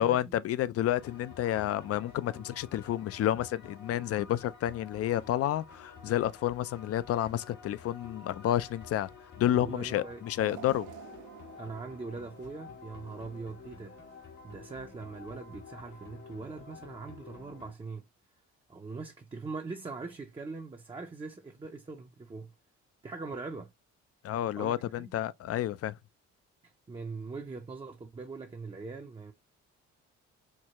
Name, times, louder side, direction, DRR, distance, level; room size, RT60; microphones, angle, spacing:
voice 1, 0.0-9.1 9.4-10.9 24.2-26.0, left 12 dB, 50° left, 0.4 m, -30 dB
sound 1, 0.8-17.7, left 4 dB, 85° left, 1.4 m, -50 dB
voice 2, 9.5-10.2 11.6-14.0 14.4-18.1 18.7-22.5 23.0-23.7 24.6-25.1 26.6-29.3, right 4 dB, 20° right, 0.6 m, -42 dB
sound 2, 10.4-13.5 14.0-14.1 15.1-15.2, right 12 dB, 80° right, 0.5 m, -50 dB
4.6 x 2.3 x 2.9 m
cardioid pair, 90°, 30 cm